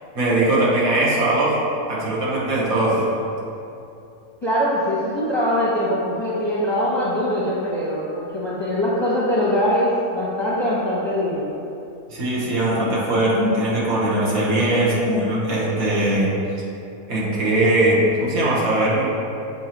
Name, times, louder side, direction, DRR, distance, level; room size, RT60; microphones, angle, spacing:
voice 1, 0.1-1.5 1.9-3.1 12.1-16.3 17.1-19.1, right 1 dB, 65° right, -7 dB, 1.6 m, -20 dB
voice 2, 4.4-11.5, equal, 25° left, -7 dB, 0.7 m, -22 dB
7.8 x 4.4 x 3.0 m, 2.7 s
omnidirectional pair, 1.7 m